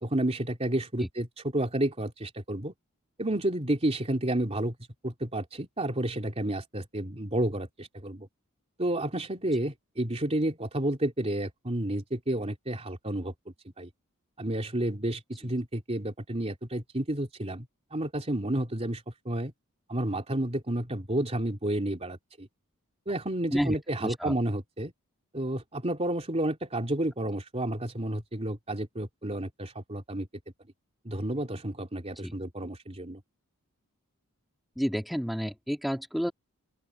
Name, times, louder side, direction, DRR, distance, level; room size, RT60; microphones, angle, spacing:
voice 1, 0.0-2.7 3.2-4.7 5.0-8.3 8.8-13.3 13.8-13.9 14.4-17.7 17.9-19.5 19.9-22.5 23.1-24.9 25.3-30.3 31.0-33.2, right 1 dB, 30° right, 3.2 m, -31 dB
voice 2, 24.0-24.3 32.2-32.3 34.8-36.3, equal, ahead, 2.1 m, -30 dB
open air
head